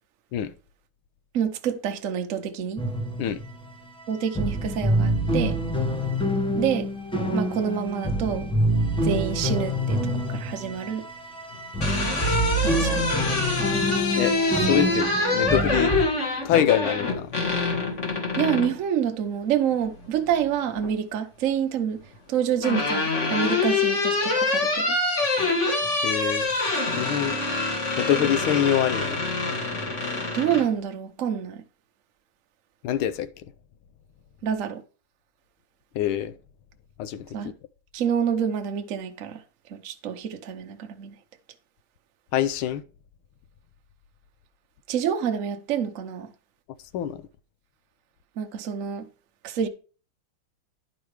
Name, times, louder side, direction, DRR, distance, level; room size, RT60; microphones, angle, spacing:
voice 1, 1.3-2.8 4.1-5.6 6.5-6.9 7.3-8.5 9.0-11.1 12.6-13.1 18.4-25.0 30.0-31.6 34.4-34.8 37.3-37.5 37.9-39.4 39.7-41.1 44.9-46.3 48.4-49.1 49.4-49.7, right 8 dB, 55° right, 0.9 m, -27 dB
sound 1, 2.8-3.7 4.0-4.1 4.3-16.0, right 1 dB, 5° left, 0.5 m, -26 dB
sound 2, 11.5-18.7 20.2-20.9 22.1-30.7, left 3 dB, 35° left, 1.7 m, -25 dB
voice 2, 14.6-15.9 16.4-17.3 26.0-26.5 27.0-27.4 28.0-29.2 32.8-33.3 35.9-36.3 37.0-37.3 42.3-42.8 46.9-47.2, left 10 dB, 80° left, 1.5 m, -24 dB
10.5 x 5.1 x 4.8 m
omnidirectional pair, 2.4 m